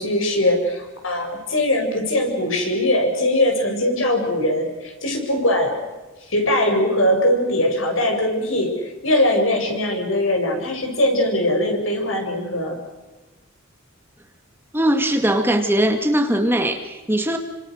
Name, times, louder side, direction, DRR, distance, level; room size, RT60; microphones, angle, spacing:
voice 1, 0.0-5.8 6.3-12.8, left 1 dB, 75° left, 3 dB, 7.5 m, -21 dB
voice 2, 14.7-17.4, right 1 dB, 10° right, 5 dB, 2.1 m, -20 dB
29.5 x 26.5 x 6.6 m, 1.1 s
head